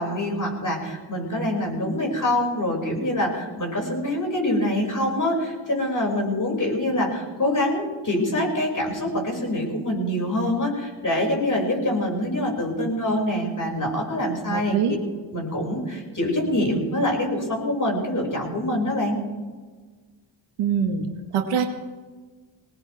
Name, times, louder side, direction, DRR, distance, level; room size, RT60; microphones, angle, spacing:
voice 1, 0.0-14.8 15.3-19.2, left 1 dB, 40° left, -1 dB, 6.4 m, -25 dB
voice 2, 14.5-15.0 20.6-21.1 21.3-21.7, right 7 dB, 90° right, 4 dB, 1.7 m, -23 dB
20.5 x 19.5 x 3.6 m, 1.4 s
cardioid pair, 60°, 50 cm